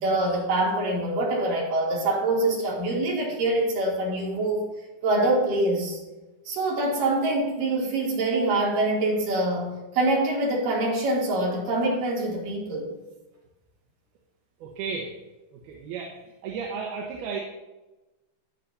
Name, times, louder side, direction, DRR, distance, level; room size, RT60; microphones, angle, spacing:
voice 1, 0.0-4.7 5.0-6.0 6.5-12.9, right 2 dB, 60° right, -4 dB, 4.3 m, -25 dB
voice 2, 14.6-15.1 15.5-17.4, right 5 dB, 75° right, -1 dB, 3.0 m, -34 dB
14.0 x 10.0 x 2.8 m, 1.1 s
omnidirectional pair, 4.7 m